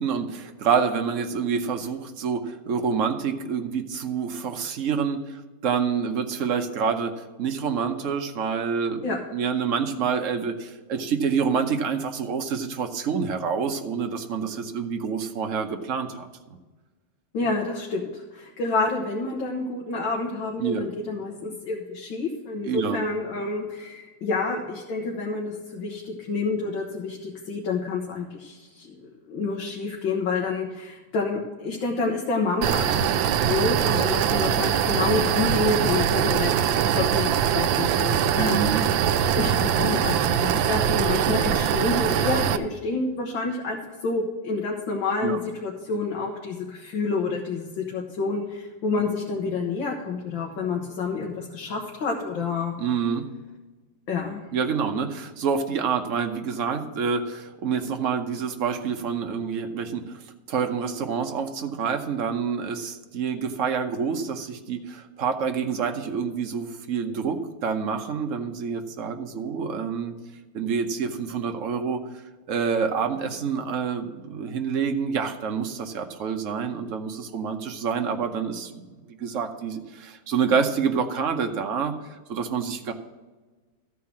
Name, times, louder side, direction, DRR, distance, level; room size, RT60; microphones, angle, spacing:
voice 1, 0.0-9.0 9.3-16.3 20.6-20.8 22.7-23.0 38.4-38.8 45.2-45.4 52.8-53.3 54.5-70.1 70.5-72.0 72.5-82.9, right 6 dB, 55° right, 5 dB, 1.0 m, -27 dB
voice 2, 17.3-38.9 39.4-52.7 54.1-54.4, left 3 dB, 85° left, -1 dB, 2.0 m, -28 dB
sound 1, 32.6-42.6, right 9 dB, 90° right, 1.3 m, -22 dB
13.5 x 4.7 x 7.2 m, 1.3 s
omnidirectional pair, 2.0 m